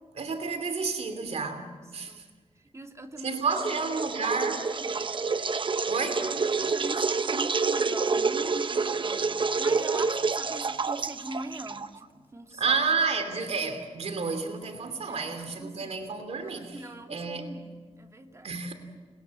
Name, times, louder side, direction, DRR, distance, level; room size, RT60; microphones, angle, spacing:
voice 1, 0.1-2.2 3.2-4.6 5.8-6.3 12.6-16.8 17.1-17.6 18.4-18.7, right 4 dB, 65° right, 3.0 m, -30 dB
voice 2, 1.3-2.2 2.7-3.6 4.0-4.1 4.4-4.9 6.6-12.8 15.1-16.0 16.4-18.6, right 2 dB, 25° right, 2.7 m, -42 dB
sound 1, 3.5-12.0, right 4 dB, 45° right, 0.9 m, -28 dB
29.5 x 21.5 x 7.7 m
wide cardioid pair, 100°, 12 cm